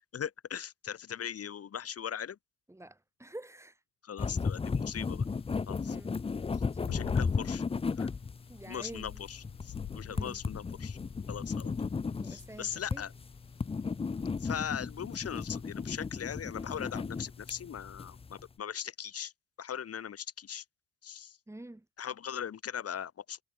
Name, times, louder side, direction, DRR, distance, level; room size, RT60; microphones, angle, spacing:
voice 1, 0.1-2.4 4.0-5.3 5.7-6.0 6.5-7.6 7.9-8.1 8.7-11.0 11.3-11.9 12.2-13.1 14.4-19.3 19.6-20.6 21.0-21.4 22.0-23.4, left 8 dB, 50° left, 2.1 m, -40 dB
voice 2, 2.7-3.8 5.9-6.2 8.5-9.3 10.1-10.4 12.2-13.0 21.5-21.9, right 1 dB, 10° right, 4.0 m, -47 dB
sound 1, 4.2-18.5, left 5 dB, 20° left, 0.6 m, -35 dB
sound 2, 5.0-15.8, left 12 dB, 75° left, 3.2 m, -47 dB
cardioid pair, 90°, 30 cm